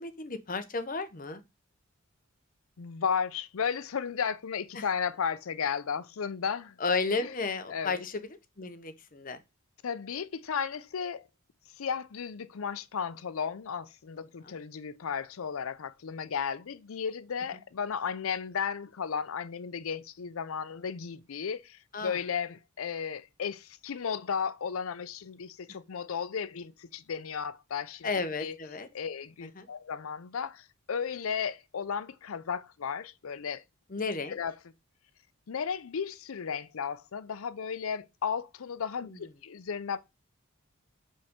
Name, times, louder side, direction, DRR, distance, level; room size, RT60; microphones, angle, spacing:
voice 1, 0.0-1.4 4.7-4.9 6.8-9.4 14.4-14.6 21.9-22.2 28.0-28.9 29.6-29.7 33.9-34.4 39.0-39.2, left 4 dB, 40° left, 0.8 m, -33 dB
voice 2, 2.8-6.7 7.2-7.3 7.7-8.0 9.8-11.3 11.8-28.1 28.4-28.6 28.9-33.6 34.3-34.5 35.5-40.0, left 6 dB, 75° left, 0.5 m, -34 dB
5.3 x 5.2 x 3.7 m
head